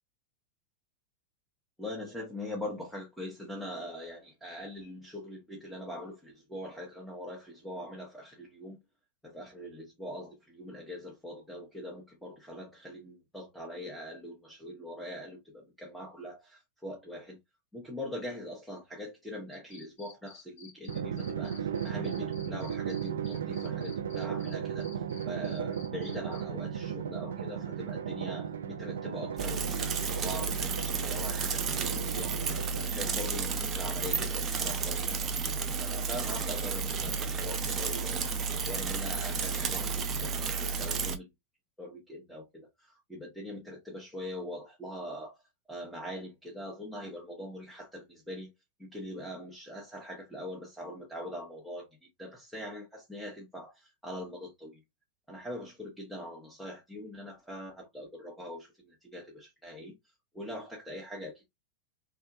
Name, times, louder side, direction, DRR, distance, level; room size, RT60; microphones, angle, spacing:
voice 1, 1.8-8.8 9.2-17.4 17.7-38.3 38.6-40.3 40.6-41.3 41.8-45.4 45.7-48.5 48.8-51.9 52.2-54.8 55.3-61.5, left 1 dB, ahead, 1.1 m, -42 dB
sound 1, 19.5-24.5 24.8-26.4, left 5 dB, 65° left, 2.1 m, -52 dB
Drum, 20.9-33.2, right 8 dB, 65° right, 0.5 m, -36 dB
Bicycle / Mechanisms, 29.4-41.2, right 5 dB, 25° right, 0.7 m, -32 dB
3.5 x 3.4 x 2.9 m
figure-of-eight pair, 90°, 0 cm